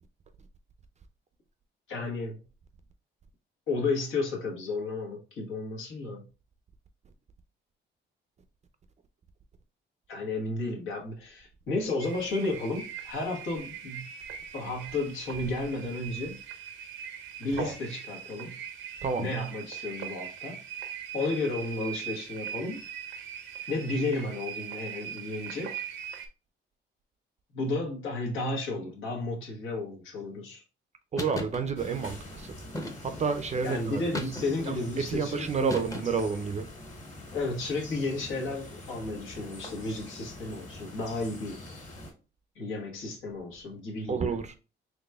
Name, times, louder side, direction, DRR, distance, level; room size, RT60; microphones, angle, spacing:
voice 1, 1.9-2.4 3.7-6.2 10.1-14.0 14.5-16.4 17.4-18.6 19.2-20.6 21.1-22.8 23.7-25.7 27.5-30.6 33.6-35.8 37.3-41.6 42.5-44.3, left 2 dB, 80° left, 1.3 m, -33 dB
sound 1, 12.0-26.3, right 9 dB, 85° right, 0.7 m, -41 dB
voice 2, 19.0-19.4 31.1-32.5 33.0-34.0 34.7-36.7 44.1-44.5, right 5 dB, 35° right, 0.4 m, -30 dB
sound 2, 31.2-31.6 32.7-33.3 34.1-34.8 35.7-36.3, left 1 dB, 15° left, 0.7 m, -36 dB
sound 3, 31.8-42.1, left 1 dB, 35° left, 1.7 m, -45 dB
4.1 x 3.0 x 2.2 m
cardioid pair, 90°, 20 cm